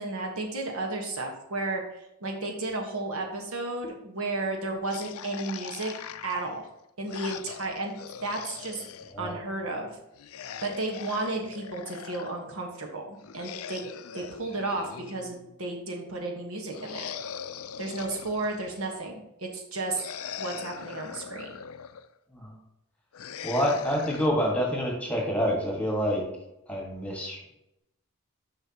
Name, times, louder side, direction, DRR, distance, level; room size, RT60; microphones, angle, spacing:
voice 1, 0.0-1.8 2.2-5.9 6.2-6.6 7.0-7.9 8.2-8.8 9.2-9.9 10.6-13.8 14.1-17.1 17.8-20.0 20.4-21.6, right 2 dB, 75° right, 2 dB, 1.4 m, -33 dB
sound 1, 4.9-9.1 10.1-12.3 13.2-15.6 16.7-18.9 19.9-22.1 23.1-24.3, left 8 dB, 80° left, 0.4 m, -41 dB
voice 2, 23.4-26.2 26.7-27.4, equal, 5° left, -1 dB, 1.6 m, -27 dB
9.7 x 5.7 x 2.9 m, 0.86 s
head